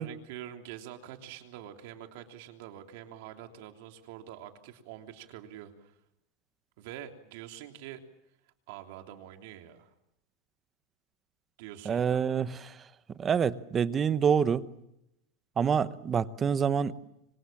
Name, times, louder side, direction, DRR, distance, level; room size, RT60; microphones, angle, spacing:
voice 1, 0.0-6.0 6.8-8.0 8.7-9.9 11.6-12.2, right 11 dB, 60° right, 5 dB, 3.2 m, -45 dB
voice 2, 11.8-12.8 13.2-14.6 15.6-17.0, right 7 dB, 20° right, 14 dB, 0.9 m, -27 dB
26.5 x 25.5 x 7.3 m, 0.83 s
supercardioid pair, 165°, 0 cm